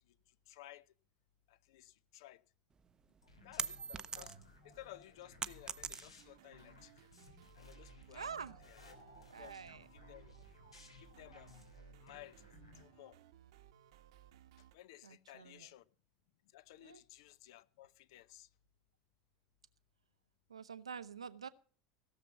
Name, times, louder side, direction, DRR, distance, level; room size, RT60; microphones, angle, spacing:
voice 1, 0.5-0.8 1.5-2.4 3.4-4.3 4.6-6.9 7.6-8.3 8.7-9.0 9.4-9.6 9.9-10.3 11.0-11.6 12.0-12.4 12.8-13.2 14.6-15.8 16.5-18.5, left 15 dB, 65° left, 0.7 m, -56 dB
sound 1, 2.8-4.6 4.9-6.4, right 6 dB, 25° right, 0.7 m, -42 dB
sound 2, 3.2-12.8, left 1 dB, 85° left, 3.1 m, -59 dB
sound 3, 6.2-14.8, right 11 dB, 65° right, 1.0 m, -63 dB
voice 2, 8.1-8.6 9.3-9.9 15.0-15.7 16.8-17.0 20.5-21.5, right 6 dB, 85° right, 0.8 m, -47 dB
16.5 x 7.0 x 7.1 m
figure-of-eight pair, 80°, 3 cm